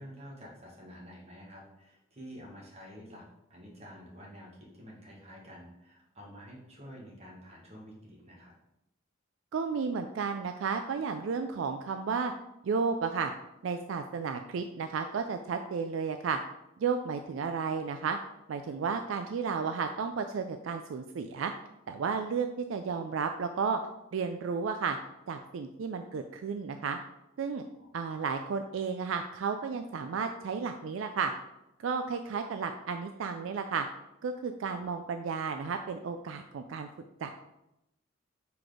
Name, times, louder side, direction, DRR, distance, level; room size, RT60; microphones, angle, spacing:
voice 1, 0.0-3.2 3.5-8.5 27.8-27.9 34.7-34.8, equal, 35° right, -3 dB, 1.7 m, -49 dB
voice 2, 9.5-12.3 12.6-13.3 13.6-16.4 16.8-18.2 18.5-21.5 21.9-23.8 24.1-25.0 25.3-27.0 27.4-27.6 27.9-31.3 31.8-33.9 34.2-36.9 37.2-37.3, right 5 dB, 70° right, 7 dB, 0.4 m, -33 dB
4.7 x 4.1 x 4.9 m, 0.88 s
head